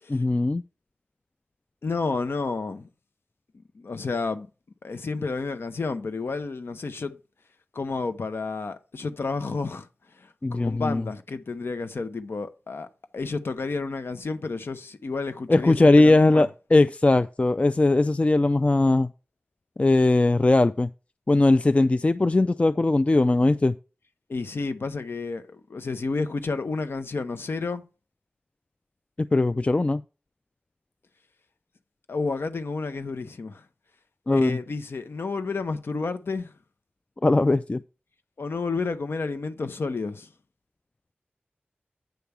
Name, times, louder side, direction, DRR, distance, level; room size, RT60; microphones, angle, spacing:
voice 1, 0.1-0.6 10.4-11.1 15.5-19.1 19.8-20.9 21.3-23.8 29.2-30.0 34.3-34.6 37.2-37.8, left 2 dB, 35° left, 0.3 m, -20 dB
voice 2, 1.8-2.9 3.7-4.5 4.8-7.2 7.7-9.9 10.2-12.9 13.1-16.5 24.3-27.8 32.1-33.6 34.3-36.5 38.4-40.3, left 4 dB, 80° left, 0.9 m, -31 dB
9.2 x 3.5 x 6.9 m
cardioid pair, 45°, 4 cm